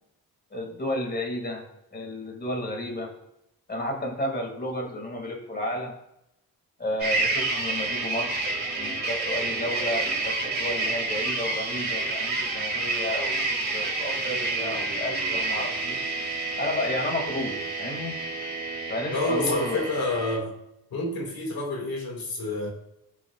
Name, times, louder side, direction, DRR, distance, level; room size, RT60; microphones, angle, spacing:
voice 1, 0.5-1.6 1.9-3.1 3.7-5.9 6.8-8.5 8.8-16.0 16.6-18.2 18.9-19.9, left 1 dB, 25° left, 2 dB, 2.3 m, -32 dB
sound 1, 7.0-20.4, right 3 dB, 25° right, 2.4 m, -29 dB
voice 2, 19.1-20.6 20.9-22.7, left 2 dB, 75° left, 0 dB, 2.1 m, -28 dB
18.0 x 6.1 x 2.4 m, 0.86 s
wide cardioid pair, 130°, 36 cm